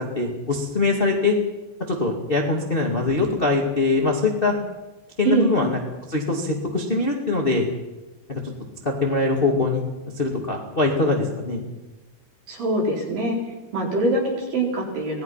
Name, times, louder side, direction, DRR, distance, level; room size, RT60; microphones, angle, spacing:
voice 1, 0.1-1.3 1.9-4.5 5.2-5.8 6.1-7.6 8.3-8.4 8.8-9.8 10.2-11.6, left 3 dB, 25° left, 0 dB, 1.2 m, -22 dB
voice 2, 5.2-5.6 12.5-13.4 13.7-15.2, right 2 dB, 50° right, -1 dB, 5.8 m, -23 dB
26.0 x 19.0 x 5.8 m, 1.1 s
omnidirectional pair, 5.3 m